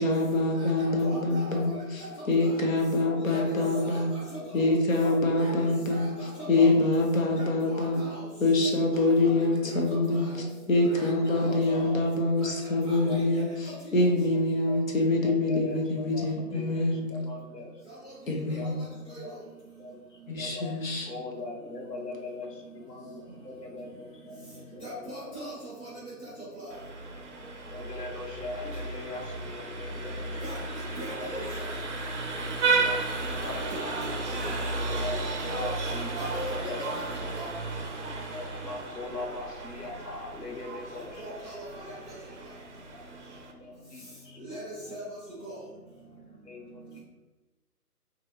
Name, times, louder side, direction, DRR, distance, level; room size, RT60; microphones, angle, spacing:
voice 1, 0.0-4.1 4.5-6.1 6.5-8.0 8.4-17.1 18.3-18.8 20.3-21.1, left 2 dB, 60° left, 0 dB, 0.8 m, -25 dB
voice 2, 0.5-1.7 2.0-2.1 2.4-2.5 3.2-4.2 4.5-4.7 5.3-5.5 5.9-6.7 7.3-8.2 8.9-9.8 10.1-10.3 10.9-11.8 12.4-13.4 18.0-18.1 18.6-18.8 19.1-19.2 24.8-25.9 26.2-26.3 26.5-26.7 30.4-31.4 33.4-33.9 36.2-36.5 36.9-37.4 41.2-41.7 44.4-44.6 44.9-45.0 45.4-45.6, right 1 dB, 5° left, -16 dB, 0.8 m, -41 dB
voice 3, 3.0-4.0 4.4-4.5 5.0-5.6 6.2-6.7 7.2-7.3 10.3-10.5 10.9-12.0 13.0-13.2 14.0-14.1 14.6-14.8 15.2-17.7 18.3-18.7 19.0-19.3 19.8-19.9 20.4-20.7 21.1-25.6 27.7-30.4 30.9-31.3 32.3-33.9 34.4-35.2 35.5-36.8 38.3-41.4 41.9-42.0 42.9-43.0 43.4-44.4 44.8-44.9 45.5-45.6 46.4-47.0, left 3 dB, 85° left, 0 dB, 1.0 m, -41 dB
Vehicle horn car horn honking, 26.7-43.5, right 3 dB, 50° right, 0.5 m, -33 dB
3.1 x 2.6 x 2.7 m, 1.1 s
figure-of-eight pair, 150°, 47 cm